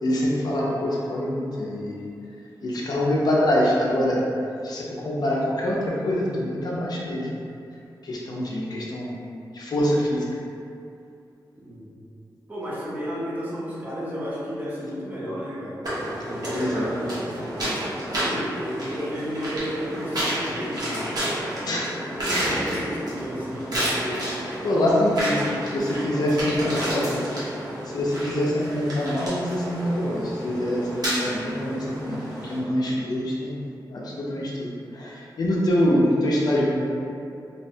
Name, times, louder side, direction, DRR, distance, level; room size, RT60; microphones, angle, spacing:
voice 1, 0.0-2.0 2.6-4.2 4.6-7.3 8.0-9.1 9.5-10.2 16.5-16.9 21.6-21.9 24.6-25.4 25.8-27.0 27.9-32.2 32.4-33.6 33.9-36.9, left 1 dB, 60° left, -4 dB, 0.4 m, -24 dB
voice 2, 11.6-11.9 12.5-15.8 16.2-17.7 18.1-21.5 21.9-24.3 25.4-25.5 26.1-27.4, equal, 25° right, -8 dB, 0.5 m, -32 dB
sound 1, 15.8-32.6, right 1 dB, 55° right, 0.8 m, -30 dB
2.7 x 2.1 x 2.6 m, 2.5 s
wide cardioid pair, 155°, 8 cm